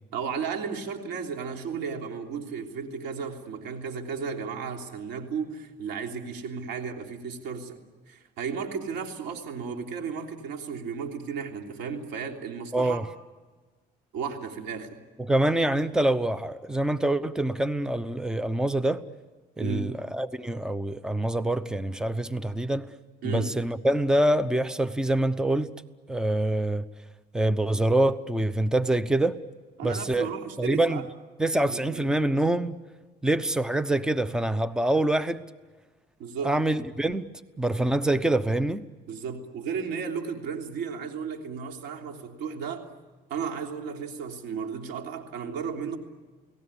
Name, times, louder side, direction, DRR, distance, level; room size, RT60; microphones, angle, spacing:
voice 1, 0.1-7.8 8.1-13.0 14.1-15.0 19.6-19.9 23.2-23.5 29.8-31.0 31.7-32.1 36.2-36.5 39.1-42.9 43.3-46.0, right 6 dB, 85° right, 3 dB, 3.3 m, -34 dB
voice 2, 12.7-13.1 15.2-19.0 19.6-22.9 23.2-25.7 26.1-26.8 27.3-29.4 29.8-30.3 30.6-31.0 31.4-32.8 33.2-35.4 36.4-37.3 37.6-38.9, right 1 dB, 5° right, 14 dB, 0.9 m, -25 dB
29.5 x 18.5 x 9.9 m, 1.3 s
cardioid pair, 110°, 17 cm